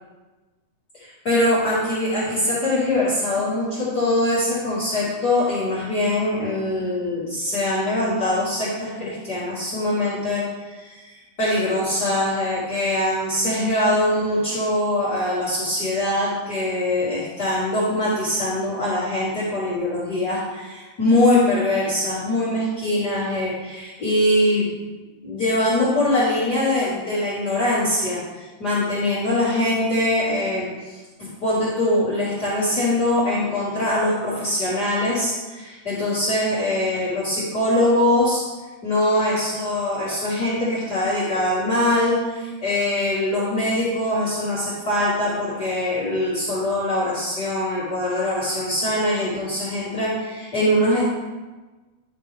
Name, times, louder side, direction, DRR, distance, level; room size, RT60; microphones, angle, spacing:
voice 1, 0.9-11.1 11.4-24.7 25.2-38.4 38.8-51.0, left 1 dB, 35° left, -10 dB, 2.4 m, -22 dB
11.0 x 6.6 x 3.5 m, 1.2 s
omnidirectional pair, 3.6 m